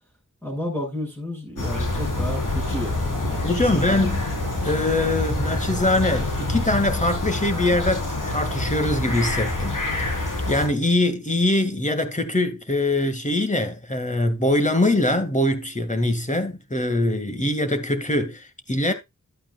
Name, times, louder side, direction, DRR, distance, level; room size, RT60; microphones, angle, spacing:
voice 1, 0.4-4.2, equal, 5° left, 6.1 m, -32 dB
sound 1, 1.6-10.7, left 2 dB, 80° left, 4.7 m, -26 dB
voice 2, 3.4-4.2 4.6-9.8 10.5-18.9, left 1 dB, 25° left, 2.1 m, -23 dB
12.0 x 8.8 x 2.4 m
wide cardioid pair, 55°, 31 cm